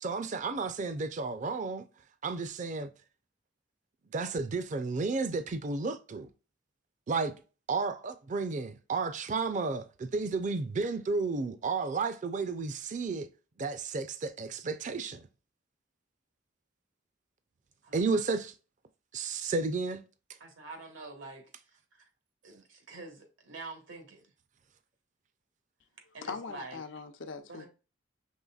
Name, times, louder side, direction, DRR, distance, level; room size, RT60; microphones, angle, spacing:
voice 1, 0.0-1.8 2.2-2.9 4.1-6.3 7.1-7.3 7.7-13.3 13.6-15.3 17.9-18.5 19.1-20.0, right 4 dB, 40° right, 0.4 m, -32 dB
voice 2, 17.8-18.2 20.4-22.1 22.4-24.3 26.1-26.8 27.5-27.7, right 3 dB, 85° right, 1.4 m, -47 dB
voice 3, 26.2-27.7, left 5 dB, 80° left, 0.7 m, -41 dB
5.4 x 3.3 x 2.3 m
head